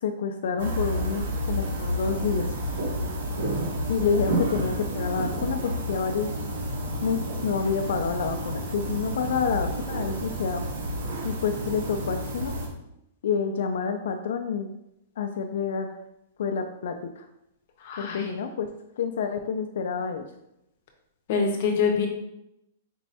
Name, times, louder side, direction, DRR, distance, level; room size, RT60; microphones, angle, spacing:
voice 1, 0.0-2.5 3.9-6.3 7.0-10.7 11.2-12.5 13.2-14.7 15.2-15.9 16.4-17.3 18.0-18.7 19.0-20.2 22.0-22.1, left 6 dB, 65° left, 6 dB, 0.3 m, -28 dB
sound 1, 0.6-12.7, equal, 70° right, 1.0 m, -30 dB
voice 2, 17.8-18.3 21.3-22.1, left 5 dB, 40° left, 2 dB, 0.7 m, -25 dB
4.4 x 3.1 x 2.8 m, 0.83 s
supercardioid pair, 180°, 0 cm